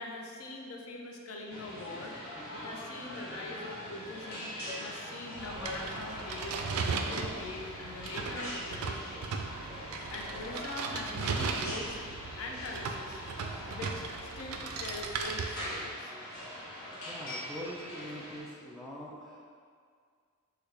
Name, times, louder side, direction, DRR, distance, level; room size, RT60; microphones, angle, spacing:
voice 1, 0.0-2.1 2.5-9.4 10.1-12.0 12.4-13.2 13.6-16.2, left 2 dB, 75° left, 1 dB, 0.4 m, -43 dB
sound 1, 1.5-18.4, left 1 dB, 50° left, 0.9 m, -42 dB
sound 2, 5.4-15.9, right 4 dB, 90° right, 0.3 m, -37 dB
voice 2, 17.1-19.5, equal, ahead, -6 dB, 0.3 m, -43 dB
3.4 x 2.3 x 3.2 m, 2.1 s
head